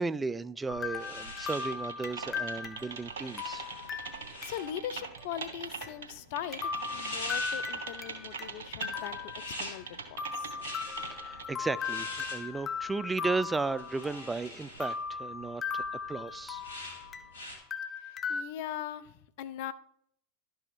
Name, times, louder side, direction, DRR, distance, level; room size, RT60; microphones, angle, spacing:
voice 1, 0.0-3.7 11.1-16.6, right 3 dB, 15° right, 0.3 m, -35 dB
sound 1, 0.7-17.6, left 1 dB, 80° left, 2.5 m, -45 dB
sound 2, 0.7-4.9 5.2-5.3 5.8-5.9 6.5-8.5 8.8-9.9 10.2-14.4 14.8-17.4 17.7-18.4, left 5 dB, 30° left, 0.8 m, -38 dB
Typing, 1.5-11.4, right 5 dB, 75° right, 1.3 m, -42 dB
voice 2, 4.4-10.5 18.0-19.7, left 11 dB, 60° left, 0.6 m, -40 dB
11.5 x 5.6 x 4.4 m
hypercardioid pair, 90°, 0 cm